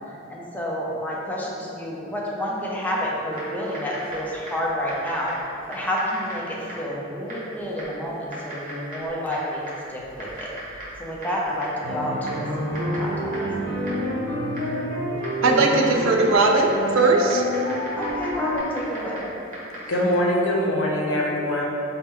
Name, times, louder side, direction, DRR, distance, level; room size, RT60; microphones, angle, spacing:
voice 1, 0.0-5.3 5.7-10.5 11.0-13.5 18.0-19.3, equal, 10° left, -4 dB, 0.5 m, -29 dB
Typing, 3.3-20.2, right 1 dB, 40° right, 1.0 m, -39 dB
sound 1, 11.8-18.6, equal, 40° left, 1.0 m, -28 dB
voice 2, 15.4-17.4, right 3 dB, 75° right, 1 dB, 0.4 m, -19 dB
voice 3, 19.9-21.7, left 1 dB, 80° left, -2 dB, 0.6 m, -22 dB
4.2 x 2.1 x 3.6 m, 2.9 s
head